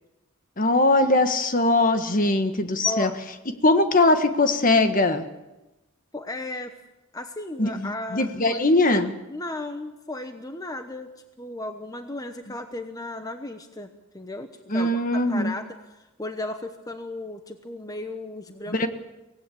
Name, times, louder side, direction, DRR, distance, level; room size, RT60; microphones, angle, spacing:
voice 1, 0.6-3.1 3.6-5.2 7.6-9.1 14.7-15.5 18.7-18.9, left 2 dB, 40° left, 8 dB, 1.5 m, -21 dB
voice 2, 2.8-3.2 6.1-6.7 7.1-9.0 9.3-11.1 11.4-18.9, left 2 dB, 15° left, 7 dB, 1.1 m, -35 dB
24.0 x 18.0 x 8.5 m, 1.0 s
head